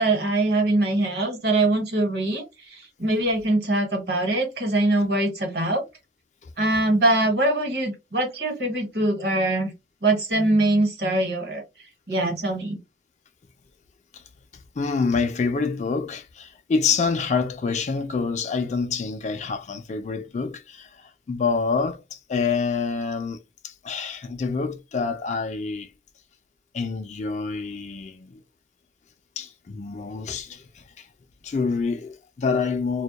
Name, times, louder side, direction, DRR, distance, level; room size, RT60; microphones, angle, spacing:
voice 1, 0.0-5.8 6.6-9.7 10.0-11.6 12.1-12.8, right 2 dB, 65° right, 1.1 m, -23 dB
voice 2, 14.8-23.4 23.6-25.9 26.7-28.4 29.4-31.1 31.4-33.0, left 4 dB, 40° left, 0.3 m, -27 dB
2.2 x 2.1 x 2.8 m
head